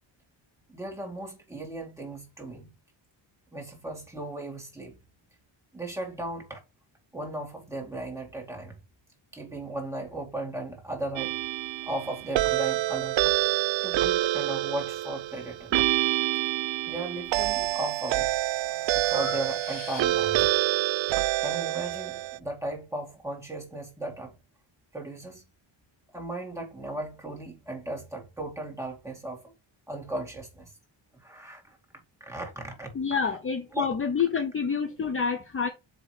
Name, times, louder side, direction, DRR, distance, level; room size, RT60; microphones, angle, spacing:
voice 1, 0.7-2.7 3.5-5.0 5.7-6.6 7.1-8.8 9.3-11.4 11.9-13.2 13.8-15.8 16.8-18.3 19.1-20.5 21.4-24.4 24.9-25.5 26.1-29.4 29.9-30.7 31.2-31.8 32.2-32.9 33.2-33.4 33.7-33.9, right 2 dB, 5° right, 2.3 m, -36 dB
sound 1, 11.2-22.4, right 15 dB, 75° right, 0.6 m, -27 dB
Breathing, 17.2-17.7 18.2-20.5, left 7 dB, 75° left, 1.5 m, -42 dB
voice 2, 32.9-35.7, left 6 dB, 30° left, 0.7 m, -28 dB
7.6 x 3.1 x 4.7 m
wide cardioid pair, 140°, 46 cm